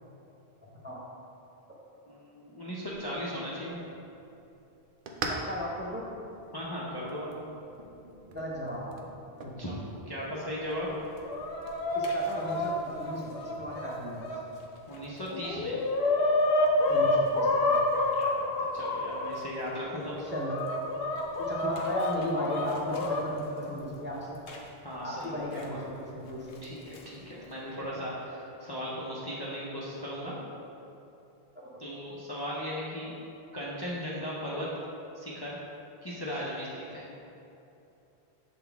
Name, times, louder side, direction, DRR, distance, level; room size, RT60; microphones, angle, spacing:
voice 1, 0.6-1.0 5.3-6.1 8.3-8.9 9.4-9.5 11.9-14.2 16.9-17.8 20.2-20.7 21.4-24.4 25.0-26.6 31.8-31.9, equal, 10° right, -5 dB, 0.7 m, -36 dB
voice 2, 2.1-3.8 6.5-7.3 9.6-10.9 14.9-15.7 18.1-20.1 24.8-25.8 26.6-30.4 31.8-33.2 33.5-34.7 35.1-35.6 36.0-37.0, equal, 25° left, -7 dB, 0.6 m, -37 dB
sound 1, 2.9-11.8, right 3 dB, 60° right, 0.7 m, -44 dB
Chicken rooster, 10.9-14.4 14.9-15.0 15.3-19.3 20.0-23.2 24.5-24.6 25.6-25.7 26.6-27.0, left 2 dB, 65° left, 0.9 m, -29 dB
7.0 x 3.9 x 3.4 m, 2.8 s
omnidirectional pair, 1.1 m